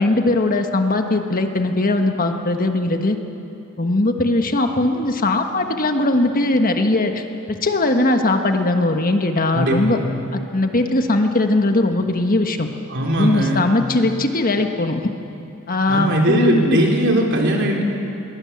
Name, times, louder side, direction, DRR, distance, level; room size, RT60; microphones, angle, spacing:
voice 1, 0.0-3.2 3.8-7.2 7.6-10.0 10.3-12.7 13.1-15.1 15.7-16.8, left 2 dB, 45° left, 5 dB, 1.5 m, -19 dB
voice 2, 9.5-10.0 12.9-13.7 15.9-17.8, right 1 dB, 60° right, 0 dB, 4.0 m, -19 dB
22.5 x 19.5 x 8.6 m, 2.7 s
head